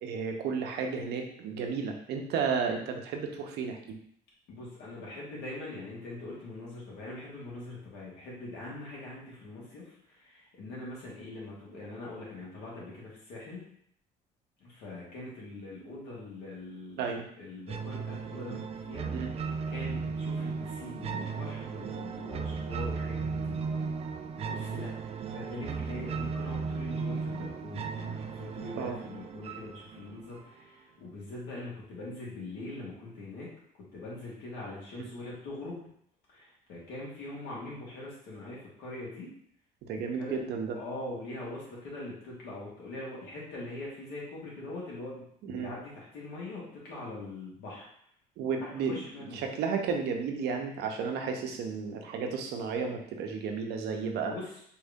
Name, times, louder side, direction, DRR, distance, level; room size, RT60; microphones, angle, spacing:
voice 1, 0.0-4.0 17.0-17.2 19.1-19.3 28.8-29.0 35.0-35.1 39.8-40.8 45.4-45.7 48.4-54.3, right 5 dB, 80° right, 3 dB, 0.8 m, -33 dB
voice 2, 4.5-13.7 14.6-17.0 17.4-23.6 24.4-24.9 25.3-33.5 33.8-35.8 36.3-39.3 39.9-40.4 40.8-47.9 48.6-49.4 52.1-52.2 54.1-54.5, left 2 dB, 85° left, -5 dB, 1.8 m, -42 dB
sound 1, 17.7-30.7, right 5 dB, 35° right, 0.4 m, -36 dB
4.5 x 2.7 x 3.5 m, 0.66 s
cardioid pair, 110°, 17 cm